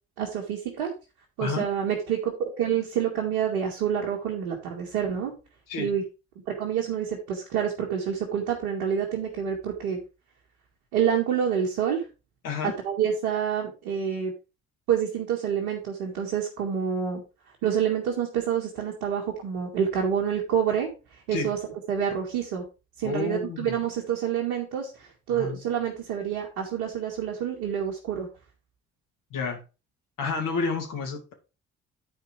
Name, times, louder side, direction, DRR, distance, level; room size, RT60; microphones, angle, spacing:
voice 1, 0.2-0.9 1.4-5.3 5.8-6.0 6.5-10.0 10.9-12.0 12.6-14.3 14.9-17.2 17.6-21.6 21.9-22.6 23.0-28.3, right 8 dB, 75° right, 2.2 m, -27 dB
voice 2, 23.0-23.8 25.3-25.6 29.3-29.6 30.2-31.3, left 5 dB, 65° left, 2.9 m, -30 dB
11.0 x 4.7 x 4.9 m
hypercardioid pair, 45°, 35 cm